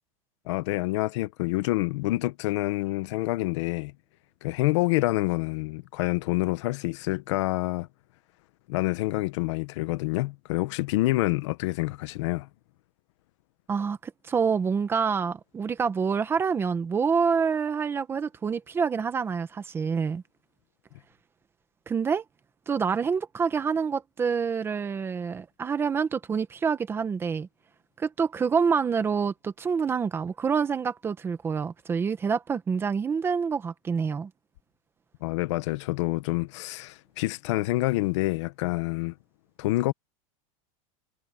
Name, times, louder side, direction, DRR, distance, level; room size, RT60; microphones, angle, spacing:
voice 1, 0.5-3.9 4.4-7.9 8.7-12.5 35.2-39.1 39.6-39.9, left 19 dB, 55° left, 1.2 m, -27 dB
voice 2, 13.7-20.2 21.9-22.2 22.7-27.5 28.0-34.3, right 6 dB, 15° right, 1.0 m, -27 dB
supercardioid pair, 165°, 18 cm